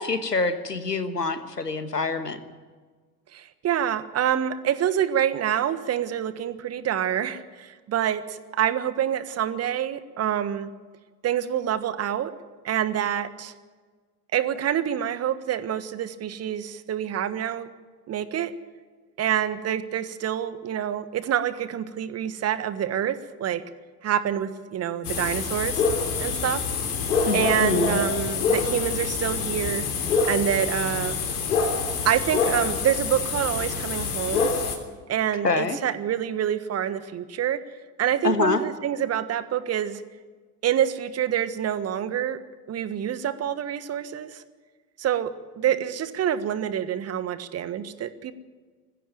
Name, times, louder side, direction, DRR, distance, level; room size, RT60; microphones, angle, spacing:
voice 1, 0.0-2.4 27.2-28.0 35.4-35.8 38.2-38.6, left 4 dB, 90° left, 11 dB, 1.4 m, -25 dB
voice 2, 3.3-10.7 11.2-12.3 12.6-13.5 14.3-17.7 18.1-18.5 19.2-23.6 24.0-25.8 26.2-26.6 27.3-29.8 30.3-31.2 32.0-34.5 35.1-37.6 38.0-40.0 40.6-42.4 42.7-44.4 45.0-45.3 45.6-48.3, right 10 dB, 30° right, 13 dB, 1.4 m, -26 dB
sound 1, 25.0-34.8, left 5 dB, 70° left, 3.4 m, -26 dB
21.0 x 15.5 x 9.3 m, 1.4 s
figure-of-eight pair, 70°, 47 cm